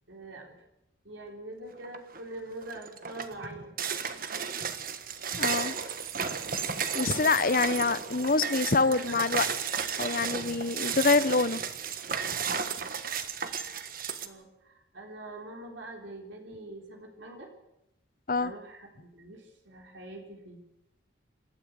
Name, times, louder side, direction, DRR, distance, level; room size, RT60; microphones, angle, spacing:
voice 1, 0.1-0.6 1.0-3.7 8.8-9.3 12.3-12.6 14.2-17.5 18.4-20.6, right 2 dB, 75° right, 2 dB, 3.9 m, -44 dB
sound 1, 1.8-2.2 2.6-14.3, right 7 dB, 45° right, 1.5 m, -33 dB
voice 2, 5.4-5.8 6.9-9.5 10.0-11.6 18.3-18.5, left 3 dB, 45° left, 16 dB, 0.8 m, -26 dB
27.5 x 13.0 x 8.2 m, 0.84 s
head